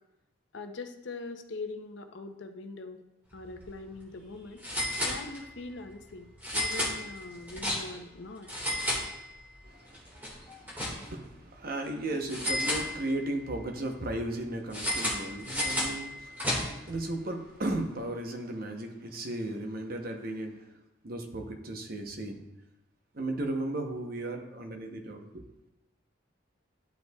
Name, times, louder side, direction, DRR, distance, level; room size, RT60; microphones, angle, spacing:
voice 1, 0.5-3.0 3.3-4.6 5.0-8.5, left 3 dB, 70° left, 7 dB, 0.6 m, -42 dB
sound 1, 3.4-3.6 3.9-4.0 4.6-5.7 6.4-8.1 8.4-9.6 9.9-11.3 12.3-13.4 14.7-17.0, left 1 dB, 10° right, 1.7 m, -32 dB
voice 2, 9.6-20.8 21.0-22.4 23.1-25.5, right 1 dB, 50° right, 4 dB, 0.8 m, -36 dB
11.5 x 5.4 x 2.3 m, 0.92 s
head